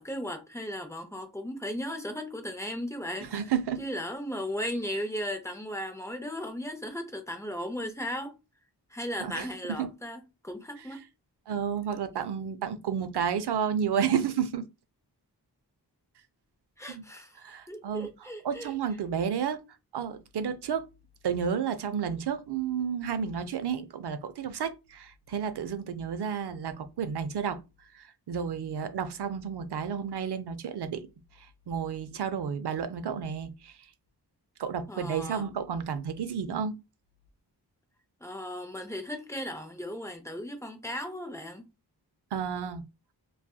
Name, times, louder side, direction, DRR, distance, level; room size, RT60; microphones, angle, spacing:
voice 1, 0.0-3.3 3.8-8.3 8.9-11.0 16.8-18.7 34.9-35.4 38.2-41.7, equal, 5° left, 0.5 m, -36 dB
voice 2, 3.2-3.8 9.2-9.9 10.8-11.0 11.5-14.7 16.9-17.0 17.4-18.1 18.4-19.6 19.9-20.9 21.2-27.6 27.9-31.1 31.4-33.8 34.6-36.8 42.3-42.8, right 7 dB, 75° right, 0.5 m, -31 dB
2.6 x 2.4 x 2.3 m
wide cardioid pair, 70°, 41 cm